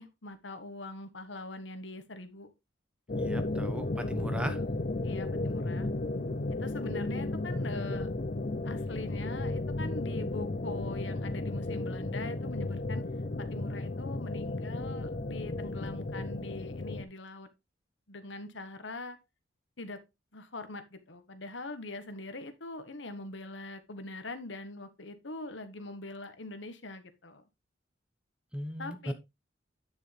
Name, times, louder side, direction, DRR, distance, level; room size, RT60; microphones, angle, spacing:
voice 1, 0.0-2.5 5.0-5.9 6.6-8.1 8.6-13.0 13.4-17.5 18.1-19.2 19.8-20.0 20.3-27.4 28.8-29.1, left 2 dB, 70° left, 1.4 m, -42 dB
sound 1, 3.1-17.0, left 2 dB, 45° left, 0.6 m, -34 dB
voice 2, 3.2-4.6 28.5-29.1, equal, 5° right, 1.0 m, -36 dB
9.7 x 6.8 x 3.3 m
head